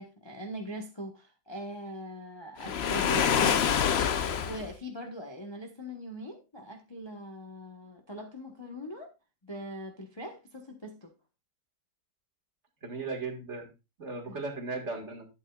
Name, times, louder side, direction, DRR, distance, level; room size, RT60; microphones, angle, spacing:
voice 1, 0.0-3.8 4.4-9.1 9.4-11.1 14.3-14.4, equal, 20° left, 0.9 m, -41 dB
Waves surf, 2.6-4.7, left 8 dB, 80° left, 0.5 m, -26 dB
voice 2, 12.8-13.7 14.0-15.3, right 3 dB, 40° right, 2.1 m, -36 dB
11.5 x 8.3 x 2.4 m
omnidirectional pair, 2.0 m